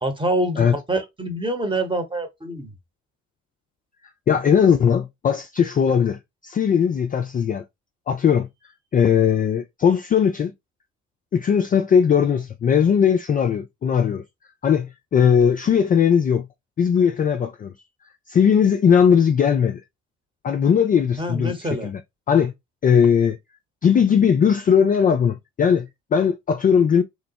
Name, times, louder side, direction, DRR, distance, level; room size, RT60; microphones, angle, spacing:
voice 1, 0.0-2.7 21.2-21.9, right 1 dB, 15° right, 0.9 m, -26 dB
voice 2, 4.3-7.6 8.1-8.5 8.9-10.5 11.3-14.2 14.6-16.5 16.8-17.7 18.3-19.8 20.4-22.0 22.3-22.5 22.8-23.4 23.8-27.0, left 7 dB, 25° left, 0.3 m, -19 dB
3.0 x 2.0 x 2.8 m
hypercardioid pair, 50°, 35 cm